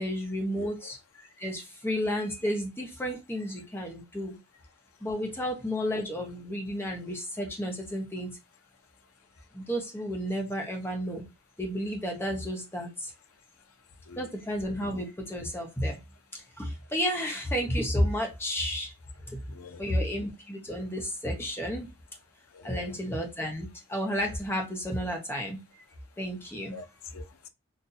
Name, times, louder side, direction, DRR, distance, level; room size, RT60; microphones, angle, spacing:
voice 1, 0.0-4.4 5.0-8.4 9.5-11.2 11.6-13.1 14.2-16.0 16.3-18.9 19.3-19.4 19.8-21.9 22.6-25.6 26.2-26.8, equal, 10° left, 0.7 m, -32 dB
voice 2, 0.5-0.9 14.1-14.3 19.5-19.8 22.5-23.0 26.7-27.5, left 5 dB, 85° left, 0.6 m, -45 dB
3.9 x 2.5 x 2.6 m
head